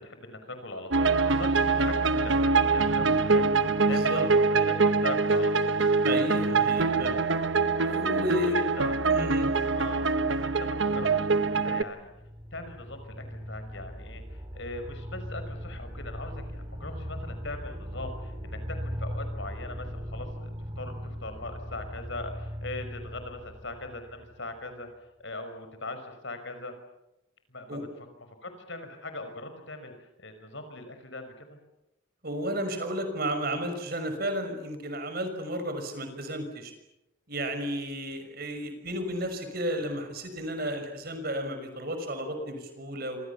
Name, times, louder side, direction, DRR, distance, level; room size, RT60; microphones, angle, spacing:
voice 1, 0.0-6.7 8.4-9.0 9.7-10.1 10.4-12.1 12.5-20.5 20.8-24.9 25.2-26.7 27.5-27.9 28.4-29.9 30.2-31.6, left 2 dB, 65° left, 8 dB, 5.8 m, -40 dB
sound 1, 0.9-11.8, right 4 dB, 65° right, 1.1 m, -24 dB
voice 2, 6.0-7.2 7.9-8.6 9.1-9.5 27.7-27.8 32.2-36.7 37.3-43.2, equal, 50° right, 7 dB, 6.0 m, -32 dB
sound 2, 11.8-24.6, equal, 25° right, 2.4 m, -39 dB
27.5 x 26.5 x 7.2 m, 0.89 s
head